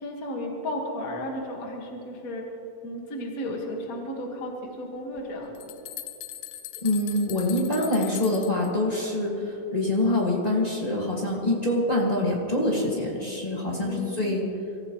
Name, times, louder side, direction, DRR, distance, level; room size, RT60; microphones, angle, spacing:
voice 1, 0.0-2.5 2.8-5.8 13.8-14.4, left 1 dB, 45° left, 0 dB, 1.1 m, -34 dB
sound 1, 5.2-8.7, left 13 dB, 80° left, 2.2 m, -40 dB
voice 2, 6.8-14.4, left 1 dB, 30° left, -4 dB, 0.7 m, -25 dB
25.0 x 15.0 x 3.1 m, 2.7 s
omnidirectional pair, 4.3 m